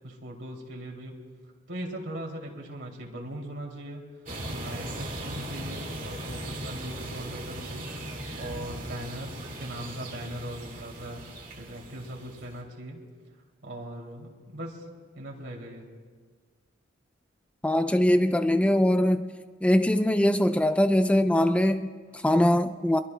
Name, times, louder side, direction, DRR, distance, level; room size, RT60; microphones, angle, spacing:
voice 1, 0.0-1.1 1.7-4.0 4.5-7.9 8.3-11.2 11.6-13.0 13.6-14.9 15.1-15.9, right 1 dB, 70° right, -1 dB, 2.7 m, -39 dB
sound 1, 4.3-12.6, right 1 dB, 45° right, 2.1 m, -38 dB
voice 2, 17.6-19.3 19.6-23.0, left 1 dB, 5° left, 9 dB, 0.4 m, -22 dB
24.0 x 22.5 x 2.2 m, 1.6 s
head